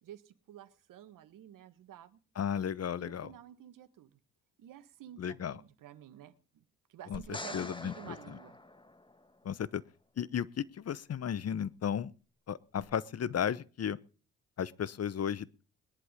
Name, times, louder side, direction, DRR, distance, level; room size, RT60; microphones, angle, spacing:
voice 1, 0.0-2.2 3.0-4.2 4.6-6.6 6.9-8.6, right 11 dB, 65° right, 13 dB, 1.6 m, -51 dB
voice 2, 2.4-3.3 5.2-5.6 7.1-7.2 7.5-8.1 9.4-9.8 10.2-12.1 12.5-14.0 14.6-15.6, left 8 dB, 45° left, 19 dB, 1.0 m, -34 dB
sound 1, 7.1-9.4 12.8-12.9, left 2 dB, 15° left, 2.0 m, -45 dB
21.0 x 11.0 x 5.2 m, 0.38 s
hypercardioid pair, 45°, 35 cm